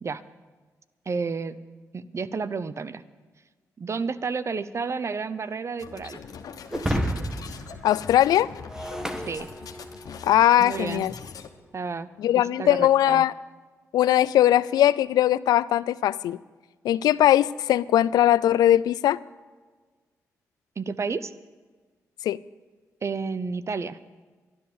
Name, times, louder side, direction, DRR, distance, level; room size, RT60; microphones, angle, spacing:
voice 1, 1.1-1.6 1.9-3.0 3.8-6.2 9.3-9.5 10.6-11.1 11.7-12.1 12.3-13.2 20.8-21.3 23.0-24.0, right 4 dB, 45° right, 15 dB, 0.7 m, -31 dB
sound 1, 5.8-11.5, left 6 dB, 70° left, 1.1 m, -42 dB
Shatter, 6.7-10.2, equal, 10° right, 1.3 m, -31 dB
voice 2, 7.8-8.5 10.2-11.1 12.2-13.3 13.9-16.4 16.8-19.2 22.2-22.4, left 12 dB, 90° left, 19 dB, 0.3 m, -20 dB
12.0 x 11.0 x 7.3 m, 1.4 s
cardioid pair, 60°, 7 cm